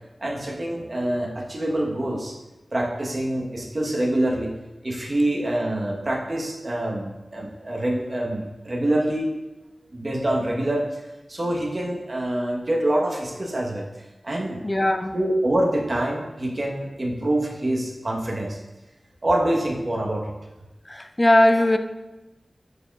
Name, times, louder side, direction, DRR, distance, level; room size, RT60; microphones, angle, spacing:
voice 1, 0.2-2.4 2.7-4.5 4.8-9.4 9.9-11.0 11.3-13.9 14.2-14.6 15.1-18.6 19.2-20.3, right 1 dB, 45° right, -1 dB, 1.1 m, -25 dB
voice 2, 14.6-15.2 20.9-21.8, left 1 dB, 25° left, 8 dB, 0.4 m, -19 dB
9.5 x 4.3 x 2.4 m, 1.0 s
wide cardioid pair, 60°, 0 cm